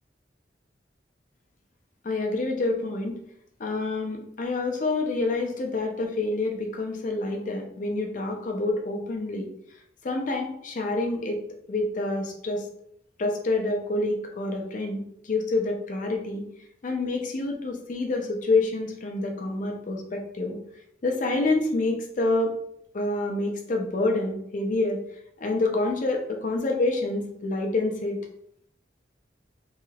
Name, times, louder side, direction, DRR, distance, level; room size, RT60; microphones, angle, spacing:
voice 1, 2.0-3.1 3.6-9.5 10.0-11.4 11.7-12.7 13.2-16.4 16.8-20.6 21.0-22.5 22.9-25.0 25.4-28.2, left 2 dB, 45° left, 3 dB, 0.5 m, -27 dB
3.0 x 2.8 x 2.3 m, 0.73 s
head